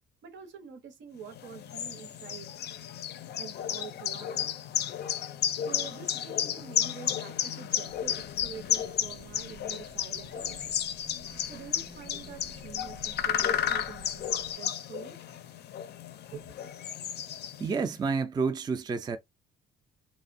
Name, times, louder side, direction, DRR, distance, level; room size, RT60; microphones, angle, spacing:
voice 1, 0.2-2.5 3.4-4.5 5.5-10.8 11.5-15.2 16.3-16.5, right 7 dB, 70° right, 0.8 m, -46 dB
sound 1, 1.3-17.9, left 10 dB, 55° left, 0.4 m, -33 dB
sound 2, 7.9-14.6, right 3 dB, 85° right, 1.1 m, -52 dB
voice 2, 17.6-19.2, right 5 dB, 20° right, 0.3 m, -29 dB
2.7 x 2.0 x 2.5 m
cardioid pair, 90°, 20 cm